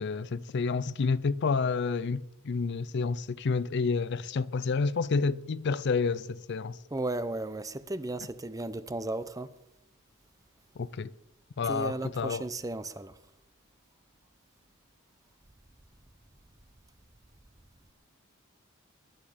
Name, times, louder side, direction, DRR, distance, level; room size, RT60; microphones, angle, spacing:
voice 1, 0.0-6.8 10.8-11.1 11.6-12.5, left 4 dB, 55° left, 0.4 m, -29 dB
voice 2, 6.9-9.5 11.6-13.2, right 2 dB, 15° right, 0.6 m, -35 dB
20.0 x 11.0 x 5.0 m
head